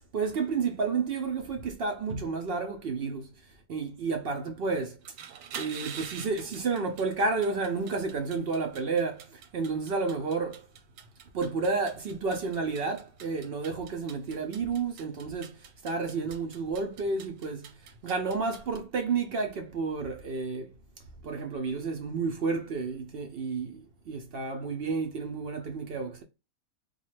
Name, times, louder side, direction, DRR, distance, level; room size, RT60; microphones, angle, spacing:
voice 1, 0.1-3.3 3.7-5.0 5.5-10.7 11.3-17.8 18.0-20.7 21.2-26.2, right 4 dB, 65° right, 0.6 m, -31 dB
sound 1, 5.0-18.8, right 8 dB, 85° right, 1.1 m, -47 dB
3.8 x 2.3 x 3.1 m
omnidirectional pair, 1.5 m